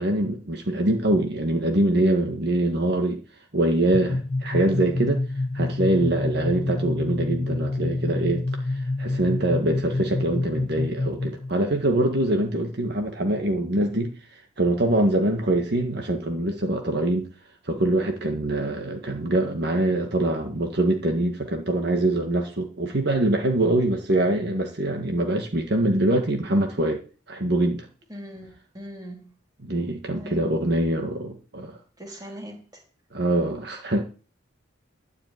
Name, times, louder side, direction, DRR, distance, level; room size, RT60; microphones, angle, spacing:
voice 1, 0.0-3.2 3.5-5.2 5.5-17.3 17.6-27.0 27.3-27.9 29.6-31.8 33.1-34.0, right 1 dB, 55° right, 1.6 m, -24 dB
sound 1, 3.9-11.5, left 2 dB, 30° left, 0.6 m, -27 dB
voice 2, 28.1-29.3 30.2-30.6 32.0-32.8, equal, 20° right, 3.6 m, -40 dB
12.5 x 5.8 x 9.1 m
head